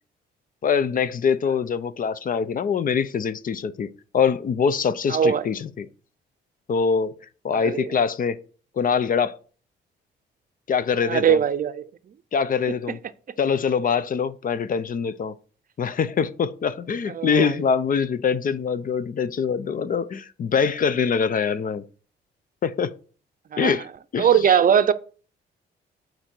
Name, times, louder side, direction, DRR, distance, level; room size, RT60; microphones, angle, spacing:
voice 1, 0.6-3.9 4.1-5.9 6.7-7.1 7.4-8.4 8.8-9.4 10.7-11.4 12.3-13.0 13.4-15.3 15.8-21.8 22.6-22.9 23.6-23.9 24.1-24.6, left 6 dB, 45° left, 0.6 m, -24 dB
voice 2, 5.1-5.5 7.5-7.9 11.0-11.8 17.1-17.6 23.5-23.7 24.2-24.9, right 8 dB, 45° right, 0.6 m, -20 dB
8.6 x 4.0 x 4.5 m
cardioid pair, 90°, 20 cm